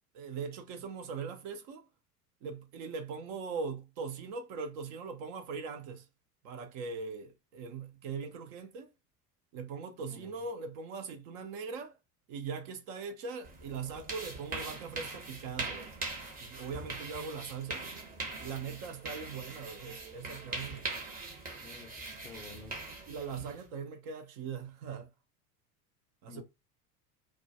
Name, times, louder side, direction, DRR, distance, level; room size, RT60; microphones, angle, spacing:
voice 1, 0.1-1.8 2.4-6.0 6.4-8.9 9.5-11.9 12.3-15.9 16.4-17.8 18.4-20.9 23.1-25.1 26.2-26.4, right 5 dB, 45° right, 0.6 m, -40 dB
voice 2, 10.0-10.4 21.6-22.8 26.3-26.4, left 4 dB, 10° left, 0.5 m, -51 dB
sound 1, 13.4-23.7, right 3 dB, 20° right, 0.8 m, -42 dB
2.2 x 2.1 x 2.6 m
figure-of-eight pair, 75°, 47 cm